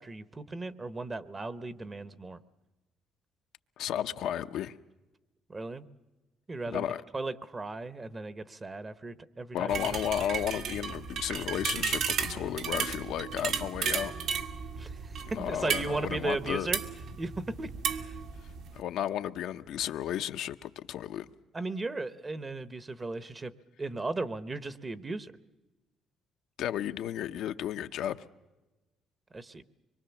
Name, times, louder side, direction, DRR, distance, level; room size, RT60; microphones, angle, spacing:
voice 1, 0.0-2.4 5.5-5.8 6.5-6.9 7.1-10.0 14.8-16.8 17.2-18.2 21.5-23.5 23.8-25.3 29.3-29.6, right 3 dB, 20° right, 0.9 m, -36 dB
voice 2, 3.8-4.7 6.7-7.0 9.5-14.1 15.3-16.7 18.7-21.3 26.6-28.2, left 11 dB, 75° left, 0.7 m, -33 dB
sound 1, 9.7-18.8, right 6 dB, 70° right, 1.7 m, -34 dB
24.5 x 23.0 x 7.1 m
cardioid pair, 120°, 0 cm